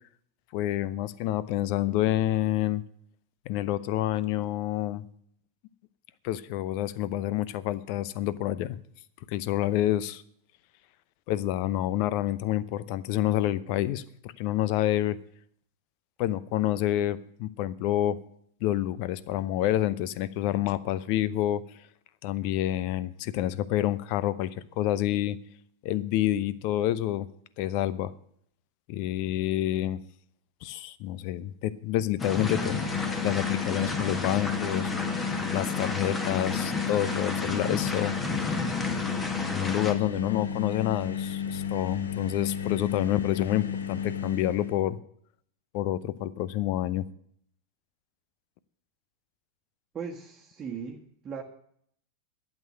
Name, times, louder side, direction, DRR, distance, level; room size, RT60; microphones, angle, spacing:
voice 1, 0.5-2.8 3.5-5.0 6.2-8.8 9.3-10.2 11.3-15.2 16.2-18.2 18.6-21.6 22.2-25.4 25.8-27.3 27.6-28.1 28.9-30.0 30.6-32.8 33.2-34.9 35.5-38.1 39.5-45.0 45.7-47.0, left 13 dB, 45° left, 18 dB, 0.7 m, -28 dB
sound 1, 32.2-44.8, left 7 dB, 70° left, 1.2 m, -33 dB
sound 2, 32.2-39.9, left 2 dB, 15° left, 1.7 m, -32 dB
voice 2, 49.9-51.4, right 6 dB, 20° right, -1 dB, 1.6 m, -38 dB
12.5 x 8.3 x 7.9 m, 0.65 s
figure-of-eight pair, 90°, 0 cm